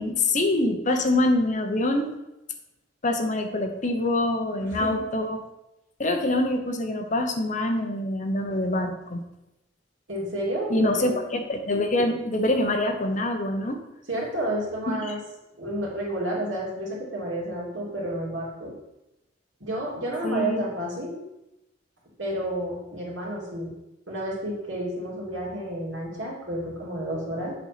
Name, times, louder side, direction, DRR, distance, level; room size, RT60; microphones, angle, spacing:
voice 1, 0.0-2.1 3.0-5.4 6.0-9.2 10.7-13.8 14.9-15.1 20.2-20.6, left 1 dB, 40° left, 5 dB, 0.9 m, -25 dB
voice 2, 4.7-5.1 10.1-11.1 14.1-15.2 15.6-18.7 19.6-21.2 22.2-23.7 24.1-27.5, right 1 dB, 80° right, -4 dB, 2.8 m, -30 dB
7.6 x 4.1 x 5.9 m, 0.92 s
head